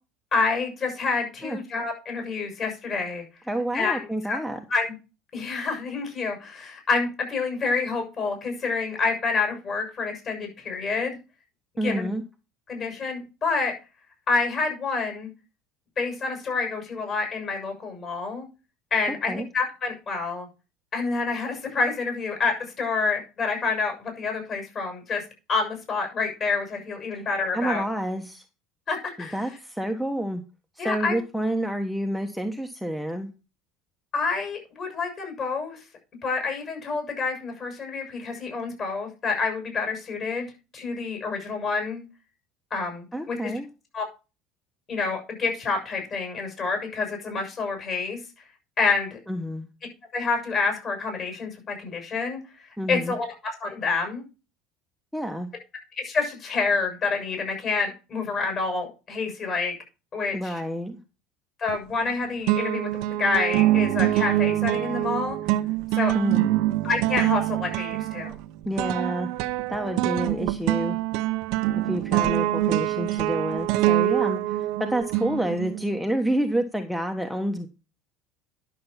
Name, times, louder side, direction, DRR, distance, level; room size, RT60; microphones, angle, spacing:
voice 1, 0.3-3.2 3.7-4.4 4.7-4.9 5.3-11.2 11.8-12.1 12.7-13.7 14.3-15.3 16.0-18.5 18.9-20.5 20.9-25.2 25.5-27.8 28.9-29.6 30.8-31.2 34.1-35.8 36.2-40.5 40.7-42.0 42.7-43.5 43.9-44.0 44.9-48.2 48.8-49.2 50.1-54.2 56.0-59.7 60.1-60.6 61.6-65.4 65.9-66.1 66.8-68.3, left 4 dB, 40° left, 4 dB, 7.0 m, -28 dB
voice 2, 3.5-4.6 11.8-12.2 19.3-19.5 27.5-28.4 29.2-30.4 30.8-33.3 43.1-43.7 49.3-49.7 52.8-53.1 55.1-55.5 60.3-61.0 66.1-66.5 68.6-69.3 69.7-71.0 71.8-77.7, right 1 dB, ahead, 6 dB, 1.2 m, -28 dB
sound 1, 61.7-62.1 62.5-75.9, right 15 dB, 75° right, 0.8 m, -25 dB
11.0 x 6.8 x 5.7 m, 0.32 s
supercardioid pair, 105°, 0 cm